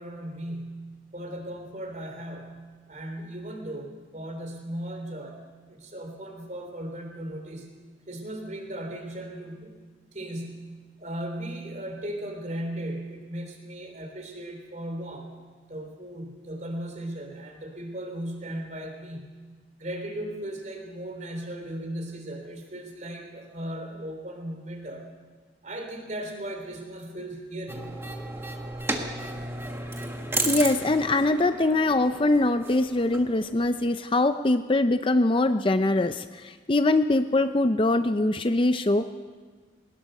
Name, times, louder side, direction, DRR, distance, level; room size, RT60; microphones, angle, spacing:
voice 1, 0.0-5.4 5.7-7.7 8.1-9.7 10.1-10.7 11.0-15.3 15.7-19.3 19.8-25.0 25.6-27.9, right 1 dB, 40° right, 4 dB, 3.3 m, -37 dB
sound 1, 27.7-33.9, right 2 dB, 10° right, 1.4 m, -34 dB
voice 2, 30.4-39.2, left 2 dB, 25° left, 9 dB, 0.5 m, -23 dB
21.0 x 19.5 x 6.6 m, 1.5 s
head